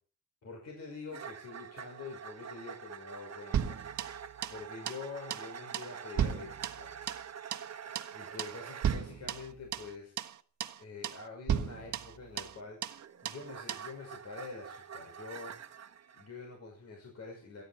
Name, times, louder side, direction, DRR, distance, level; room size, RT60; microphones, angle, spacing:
voice 1, 0.4-7.0 7.7-10.1 10.8-15.6 16.1-17.6, left 4 dB, 60° left, 0 dB, 5.9 m, -46 dB
sound 1, 1.1-9.1 12.4-16.3, right 7 dB, 60° right, 1.4 m, -46 dB
sound 2, 3.5-4.6 4.9-5.0 5.3-5.5 5.7-7.3 7.5-7.7 7.9-8.1 8.4-8.6 8.8-9.9 10.2-10.3 10.6-10.8 11.0-11.2 11.5-12.6 12.8-13.0 13.2-13.4 13.7-13.9, right 9 dB, 80° right, 1.5 m, -35 dB
28.5 x 11.5 x 4.5 m, 0.41 s
wide cardioid pair, 160°, 30 cm